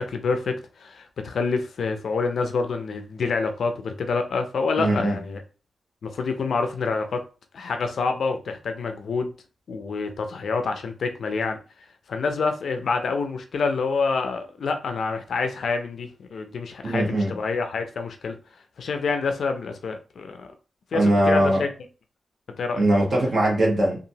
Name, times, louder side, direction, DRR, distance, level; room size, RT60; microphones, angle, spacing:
voice 1, 0.0-5.4 6.0-7.2 7.5-9.3 9.7-11.6 12.1-18.4 18.8-20.5 20.9-21.7 22.6-22.8, left 4 dB, 75° left, 0.4 m, -27 dB
voice 2, 4.8-5.2 16.8-17.4 20.9-21.6 22.8-24.0, right 1 dB, 55° right, 1.2 m, -21 dB
2.8 x 2.4 x 2.7 m
wide cardioid pair, 115°, 0 cm